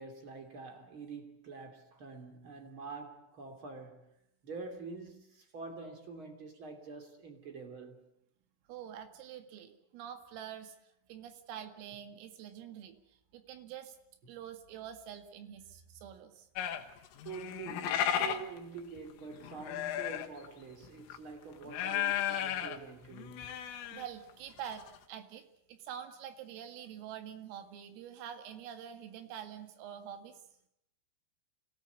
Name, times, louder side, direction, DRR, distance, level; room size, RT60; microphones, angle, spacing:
voice 1, 0.0-4.1 4.4-8.1 14.2-14.3 17.2-23.6, right 4 dB, 35° right, 2.6 m, -46 dB
voice 2, 8.7-10.8 11.1-13.0 13.3-14.0 14.3-16.5 23.9-30.4, right 9 dB, 85° right, 4.6 m, -46 dB
sound 1, 16.6-20.5 20.8-21.2 21.6-22.8 23.1-24.1 24.3-24.4 24.7-25.0, left 10 dB, 80° left, 4.0 m, -34 dB
26.5 x 17.5 x 8.3 m
omnidirectional pair, 5.9 m